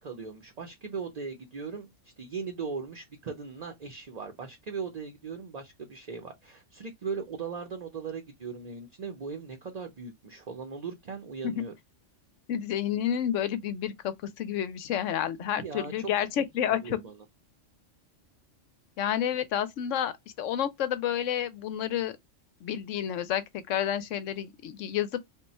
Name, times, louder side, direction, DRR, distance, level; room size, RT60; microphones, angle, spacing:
voice 1, 0.0-1.9 2.2-11.7 15.5-17.2, right 5 dB, 40° right, 0.6 m, -39 dB
voice 2, 12.5-17.0 19.0-22.1 22.6-25.1, left 10 dB, 80° left, 1.0 m, -30 dB
3.6 x 2.3 x 4.0 m
omnidirectional pair, 1.3 m